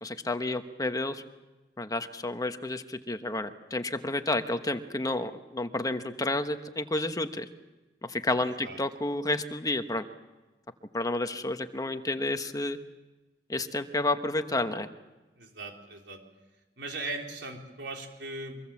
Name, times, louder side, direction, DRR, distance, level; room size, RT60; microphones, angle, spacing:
voice 1, 0.0-1.2 1.8-7.5 8.0-10.1 10.9-12.8 13.5-14.9, left 2 dB, 20° left, 8 dB, 1.2 m, -30 dB
voice 2, 8.4-8.8 15.4-16.2 16.8-18.6, right 2 dB, 85° right, 2 dB, 3.8 m, -39 dB
24.5 x 23.0 x 7.2 m, 1.1 s
head